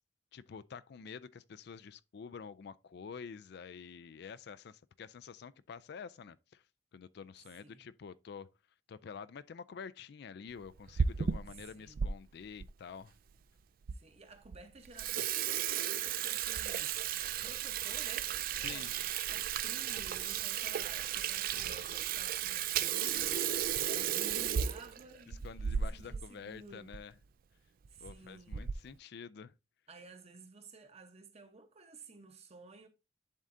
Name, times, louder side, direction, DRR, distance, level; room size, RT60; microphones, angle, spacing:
voice 1, 0.3-6.6 6.9-8.5 8.9-13.1 18.6-18.9 25.4-27.1 28.0-29.5, left 6 dB, 60° left, 0.4 m, -48 dB
Water tap faucet / Sink (filling or washing), 10.7-12.1 12.6-12.7 13.4-13.5 13.9-14.0 14.4-14.6 14.8-26.3 26.6-26.7 26.9-27.1 27.8-28.1 28.5-28.9, right 8 dB, 50° right, 0.4 m, -34 dB
voice 2, 11.5-12.0 13.9-17.0 17.4-18.3 18.7-18.9 19.3-23.5 23.8-26.9 27.9-28.7 29.9-32.9, right 3 dB, 35° right, 1.0 m, -54 dB
10.5 x 3.7 x 2.6 m
head